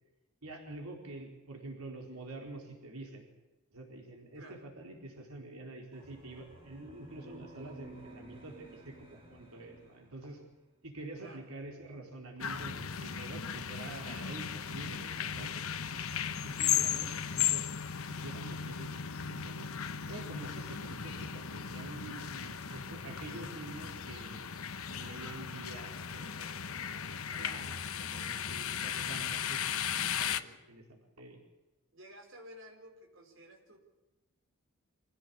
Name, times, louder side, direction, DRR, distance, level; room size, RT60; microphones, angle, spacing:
voice 1, 0.4-3.3 3.7-10.4 10.8-16.0 16.4-17.6 18.1-19.7 20.1-24.4 24.9-31.4, right 2 dB, 80° right, 1 dB, 4.5 m, -47 dB
sound 1, 5.9-10.6, right 1 dB, 25° right, 4.8 m, -55 dB
sound 2, 12.4-30.4, left 8 dB, 75° left, 1.1 m, -36 dB
voice 2, 27.3-27.8 31.9-33.8, right 1 dB, 60° right, 1 dB, 4.7 m, -52 dB
26.0 x 16.5 x 8.6 m, 1.1 s
head